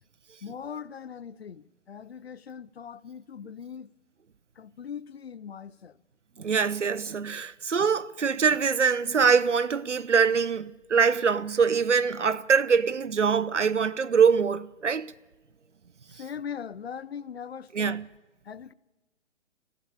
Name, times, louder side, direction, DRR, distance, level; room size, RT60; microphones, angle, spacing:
voice 1, 0.4-3.9 4.6-6.0 16.2-18.0 18.5-18.7, left 7 dB, 55° left, 0.7 m, -40 dB
voice 2, 6.4-15.1 17.7-18.1, right 6 dB, 70° right, 0.9 m, -24 dB
27.5 x 15.0 x 8.5 m
figure-of-eight pair, 130°, 36 cm